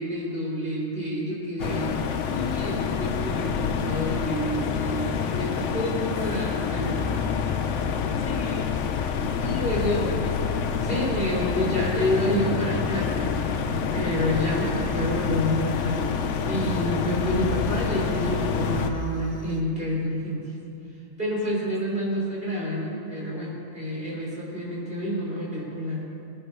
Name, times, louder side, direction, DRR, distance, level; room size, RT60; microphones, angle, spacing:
voice 1, 0.0-1.9 2.2-7.4 9.4-10.2 10.8-13.3 13.9-16.1 16.5-20.4 21.2-26.0, equal, 35° right, -5 dB, 4.2 m, -28 dB
sound 1, 1.6-18.9, left 6 dB, 55° left, 1.0 m, -27 dB
voice 2, 8.2-8.8 9.8-10.6 14.0-14.4 17.2-17.5 21.5-22.1, left 4 dB, 80° left, 1 dB, 1.6 m, -41 dB
Aircraft, 14.5-19.6, left 3 dB, 30° left, 0.8 m, -45 dB
19.0 x 10.5 x 5.5 m, 2.6 s
omnidirectional pair, 1.7 m